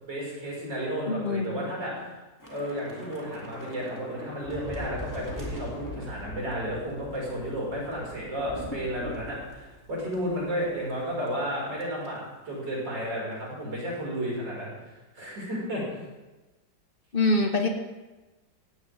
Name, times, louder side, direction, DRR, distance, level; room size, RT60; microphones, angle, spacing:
voice 1, 0.0-1.9 2.5-14.7 15.1-15.8, equal, 80° right, -4 dB, 6.7 m, -32 dB
voice 2, 1.1-1.5 17.1-17.7, left 2 dB, 30° left, 2 dB, 2.0 m, -24 dB
Thunder / Rain, 2.4-11.0 11.3-11.5 11.8-12.1, equal, 10° left, 2.8 m, -41 dB
18.0 x 16.5 x 3.7 m, 1.1 s
omnidirectional pair, 1.9 m